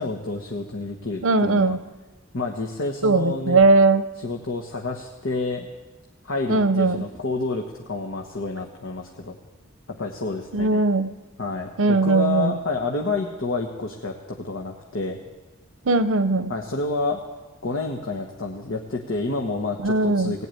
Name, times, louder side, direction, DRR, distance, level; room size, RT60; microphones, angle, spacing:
voice 1, 0.0-1.8 2.3-3.6 4.2-5.7 6.2-9.4 9.9-10.8 11.4-15.2 16.5-17.2 17.6-20.5, left 3 dB, 75° left, 1 dB, 1.3 m, -29 dB
voice 2, 1.2-1.8 3.0-4.0 6.5-7.0 10.5-11.1 11.8-12.6 15.9-16.5 19.8-20.3, right 3 dB, 85° right, 12 dB, 0.8 m, -19 dB
18.0 x 8.4 x 9.2 m, 1.2 s
head